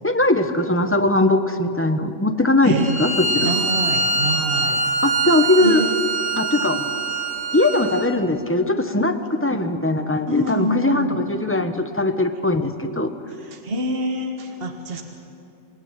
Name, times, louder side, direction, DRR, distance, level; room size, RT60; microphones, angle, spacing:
voice 1, 0.0-3.5 5.0-5.8 6.4-6.8 7.5-13.1, left 2 dB, 10° left, 7 dB, 1.1 m, -20 dB
voice 2, 2.6-3.0 3.4-4.8 5.6-5.9 10.3-11.2 13.4-15.0, right 1 dB, 45° right, 4 dB, 1.9 m, -26 dB
Bowed string instrument, 2.8-8.1, right 3 dB, 75° right, 4.5 m, -24 dB
27.5 x 18.0 x 9.2 m, 2.7 s
omnidirectional pair, 1.4 m